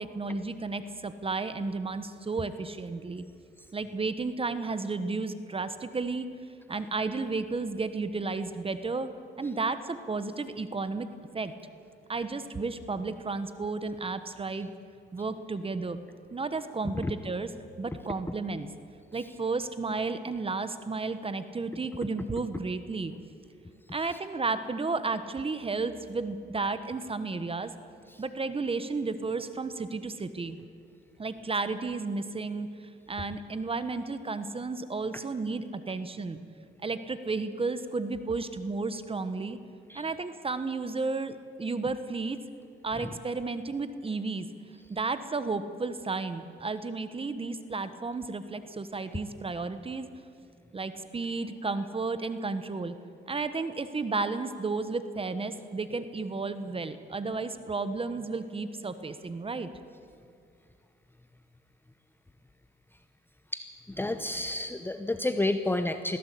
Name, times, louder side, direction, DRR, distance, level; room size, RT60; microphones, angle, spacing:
voice 1, 0.0-3.2 3.7-6.3 6.7-9.1 9.4-11.1 11.3-11.5 12.1-14.7 15.1-16.0 16.3-17.5 17.8-18.7 19.1-23.1 23.9-27.7 28.2-30.6 31.2-32.7 33.1-36.4 36.8-39.6 39.9-42.4 42.8-44.5 44.9-50.1 50.7-52.9 53.3-59.7, right 3 dB, 30° right, 11 dB, 1.3 m, -33 dB
voice 2, 63.9-66.2, left 2 dB, 10° left, 9 dB, 0.9 m, -30 dB
21.0 x 16.5 x 8.5 m, 2.3 s
cardioid pair, 90°, 20 cm